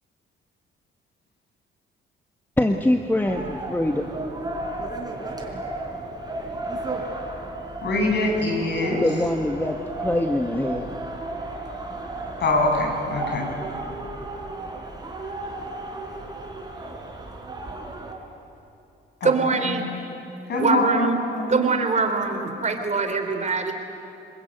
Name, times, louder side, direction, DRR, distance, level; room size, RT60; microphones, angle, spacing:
voice 1, 2.6-4.1 9.0-10.9, left 1 dB, 10° left, 4 dB, 1.4 m, -23 dB
sound 1, 3.2-18.1, right 2 dB, 20° right, 4.7 m, -34 dB
voice 2, 7.8-9.0 12.4-13.5 19.2-19.3 19.6-19.8 20.5-21.1 21.4-21.6, left 2 dB, 60° left, 1 dB, 7.5 m, -23 dB
voice 3, 19.2-19.9 20.6-21.1 21.5-23.7, right 4 dB, 35° right, 6 dB, 3.4 m, -23 dB
27.5 x 21.5 x 9.2 m, 2.8 s
cardioid pair, 90°, 20 cm